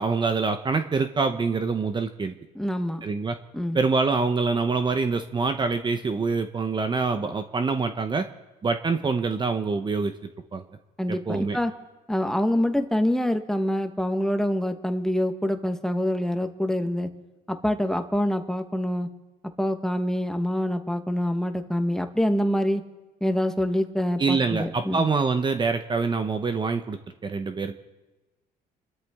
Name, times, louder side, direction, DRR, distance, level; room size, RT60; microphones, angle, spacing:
voice 1, 0.0-2.3 3.0-3.4 3.7-8.3 8.6-10.1 10.5-10.6 11.1-11.6 24.2-27.0 27.2-27.7, right 4 dB, 25° right, 8 dB, 0.9 m, -25 dB
voice 2, 2.5-3.0 3.5-3.8 11.0-11.7 12.1-17.1 17.5-19.1 19.6-22.8 23.2-25.1, equal, 5° left, 7 dB, 1.2 m, -25 dB
29.0 x 12.5 x 3.6 m, 1.1 s
cardioid pair, 110°, 17 cm